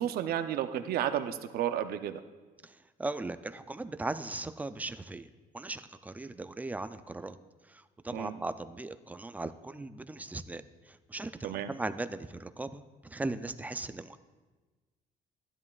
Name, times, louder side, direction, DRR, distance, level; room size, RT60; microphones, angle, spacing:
voice 1, 0.0-2.2 8.1-8.3 11.4-11.7, right 10 dB, 65° right, 9 dB, 0.6 m, -32 dB
voice 2, 2.6-7.4 7.7-14.2, right 2 dB, 10° right, 12 dB, 0.3 m, -38 dB
12.0 x 10.5 x 2.4 m, 1.3 s
cardioid pair, 110°, 17 cm